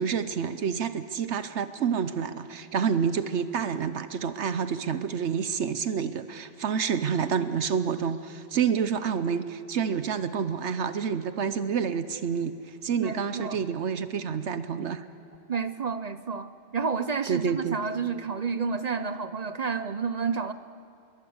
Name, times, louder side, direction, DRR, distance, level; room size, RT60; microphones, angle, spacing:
voice 1, 0.0-15.0 17.3-17.8, right 7 dB, 70° right, 12 dB, 1.1 m, -28 dB
voice 2, 13.0-13.6 15.5-20.5, right 5 dB, 40° right, 12 dB, 0.7 m, -30 dB
27.0 x 22.0 x 7.9 m, 2.5 s
omnidirectional pair, 1.2 m